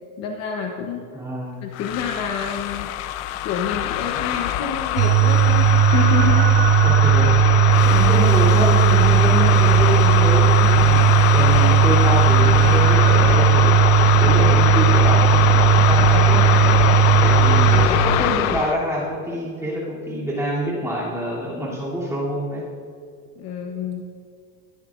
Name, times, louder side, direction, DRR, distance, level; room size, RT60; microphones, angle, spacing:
voice 1, 0.2-1.0 1.6-2.9 3.4-6.5 23.4-24.0, left 6 dB, 40° left, 2 dB, 0.9 m, -29 dB
voice 2, 1.1-1.6 6.8-7.3 7.8-13.8 14.2-22.7, equal, 5° right, -7 dB, 2.7 m, -26 dB
sound 1, 1.7-18.8, left 12 dB, 75° left, 0.7 m, -22 dB
sound 2, 5.0-17.9, right 8 dB, 30° right, 0.6 m, -16 dB
21.0 x 10.5 x 2.5 m, 2.2 s
cardioid pair, 170°, 41 cm